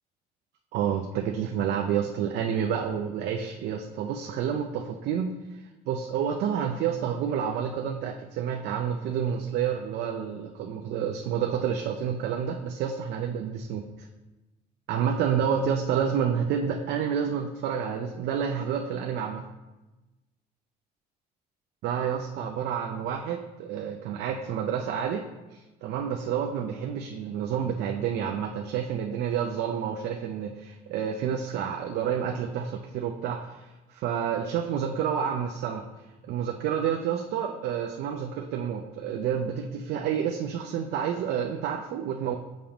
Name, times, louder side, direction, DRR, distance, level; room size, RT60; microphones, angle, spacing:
voice 1, 0.7-14.1 14.9-19.4 21.8-35.9 36.2-42.4, right 8 dB, 75° right, 3 dB, 0.5 m, -29 dB
6.9 x 5.1 x 2.9 m, 1.1 s
cardioid pair, 110°, 17 cm